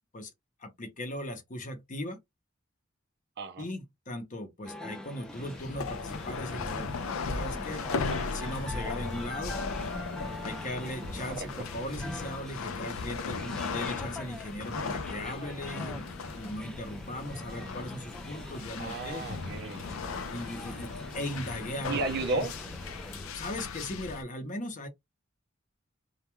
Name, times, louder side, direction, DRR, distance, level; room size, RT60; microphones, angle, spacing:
voice 1, 0.6-2.2 3.6-7.0 7.2-9.6 10.4-16.1 16.4-19.3 20.3-22.0 22.3-22.4 23.3-24.9, left 1 dB, 40° left, 0.7 m, -38 dB
sound 1, 4.6-23.3, left 1 dB, 5° left, 0.4 m, -44 dB
sound 2, 5.2-24.2, left 4 dB, 75° left, 0.4 m, -37 dB
voice 2, 18.8-19.9 21.9-22.5, right 3 dB, 55° right, 0.5 m, -34 dB
2.2 x 2.2 x 2.9 m
head